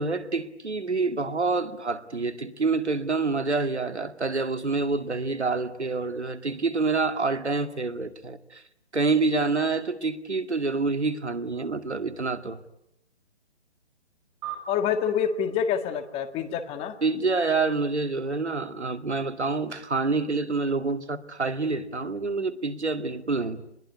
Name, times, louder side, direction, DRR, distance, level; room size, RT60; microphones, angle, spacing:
voice 1, 0.0-8.6 8.9-12.6 17.0-23.6, right 3 dB, 90° right, 2.3 m, -27 dB
sound 1, 14.4-17.2, right 9 dB, 35° right, 6.1 m, -43 dB
voice 2, 14.7-16.9, left 8 dB, 20° left, 1.8 m, -27 dB
26.5 x 21.5 x 9.8 m
figure-of-eight pair, 140°, 33 cm